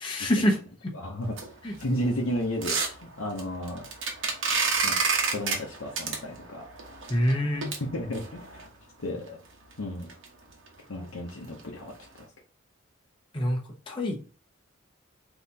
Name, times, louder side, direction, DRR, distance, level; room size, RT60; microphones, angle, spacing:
voice 1, 0.0-0.6 1.6-1.7 7.1-7.7 13.3-13.6 13.9-14.2, equal, 25° left, -1 dB, 0.8 m, -25 dB
voice 2, 0.9-1.4 1.8-3.9 4.8-5.0 5.3-6.7 7.9-8.6 9.0-9.4 9.8-10.1 10.9-12.3, equal, 75° left, -1 dB, 0.8 m, -33 dB
sound 1, 1.2-8.7 9.3-9.4 9.7-9.8 10.1-10.2 10.5-10.7 11.1-11.3 11.6-11.7 12.2-12.3, right 4 dB, 65° right, 1.0 m, -30 dB
4.1 x 2.9 x 3.4 m, 0.37 s
head